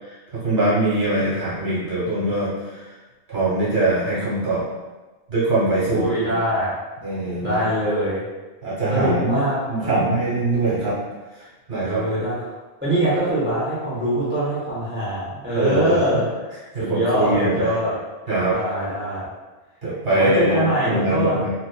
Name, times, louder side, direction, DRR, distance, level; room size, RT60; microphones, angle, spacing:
voice 1, 0.0-2.9 3.3-4.7 5.3-6.3 7.0-7.7 8.6-9.4 9.7-11.0 11.7-12.0 15.5-16.0 16.7-17.7 18.3-18.5 19.8-21.5, right 2 dB, 45° right, -8 dB, 1.2 m, -22 dB
voice 2, 5.9-6.7 7.4-8.2 8.9-10.1 11.8-12.3 12.8-16.2 16.8-17.9 18.5-19.3 20.1-21.4, right 1 dB, 15° right, -9 dB, 0.5 m, -23 dB
2.6 x 2.2 x 2.2 m, 1.2 s
omnidirectional pair, 1.2 m